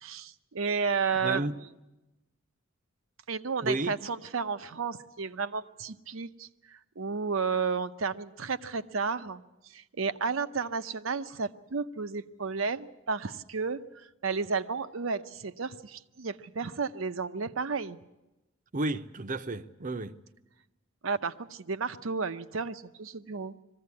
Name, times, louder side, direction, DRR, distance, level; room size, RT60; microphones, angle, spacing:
voice 1, 0.0-1.5 3.3-18.0 21.0-23.6, right 5 dB, 80° right, 0.8 m, -32 dB
voice 2, 1.2-1.5 3.6-3.9 18.7-20.1, right 2 dB, 40° right, 0.7 m, -32 dB
21.0 x 15.5 x 9.6 m
head